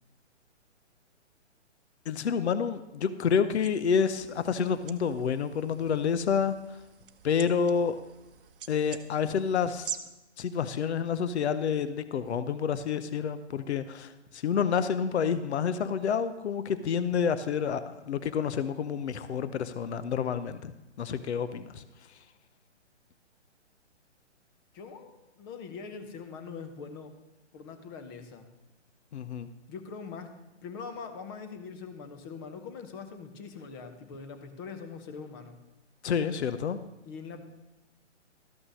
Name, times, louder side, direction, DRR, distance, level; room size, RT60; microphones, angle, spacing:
voice 1, 2.1-6.8 7.2-8.0 8.7-10.0 10.4-22.2 29.1-29.5 36.0-36.8, left 7 dB, 65° left, 13 dB, 0.8 m, -29 dB
sound 1, 3.6-10.0, right 9 dB, 50° right, 0.8 m, -46 dB
voice 2, 24.7-27.1 27.5-28.5 29.7-30.3 30.6-35.6 37.0-37.4, left 5 dB, 20° left, 8 dB, 0.8 m, -42 dB
13.0 x 6.1 x 6.3 m, 0.97 s
hypercardioid pair, 150°, 36 cm